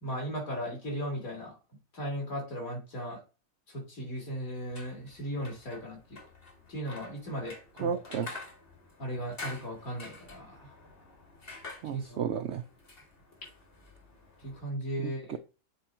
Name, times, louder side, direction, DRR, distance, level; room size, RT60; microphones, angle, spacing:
voice 1, 0.0-1.6 1.9-3.2 3.7-6.2 6.7-8.0 9.0-10.7 11.9-12.2 14.4-15.4, equal, 55° left, -1 dB, 3.4 m, -37 dB
sound 1, 4.6-14.6, left 3 dB, 35° left, 2.0 m, -48 dB
voice 2, 7.8-8.3 11.8-12.6 15.0-15.4, right 7 dB, 80° right, 10 dB, 0.6 m, -33 dB
8.0 x 4.2 x 4.2 m, 0.31 s
omnidirectional pair, 1.8 m